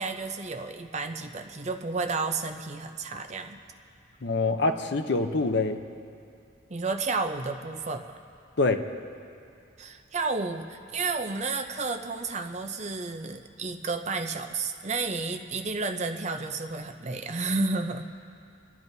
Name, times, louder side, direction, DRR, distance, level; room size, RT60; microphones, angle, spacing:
voice 1, 0.0-3.6 6.7-8.2 9.8-18.1, right 3 dB, 35° right, 6 dB, 0.5 m, -31 dB
voice 2, 4.2-5.8 8.6-8.8, left 3 dB, 55° left, 7 dB, 0.6 m, -25 dB
28.0 x 10.5 x 2.7 m, 2.4 s
head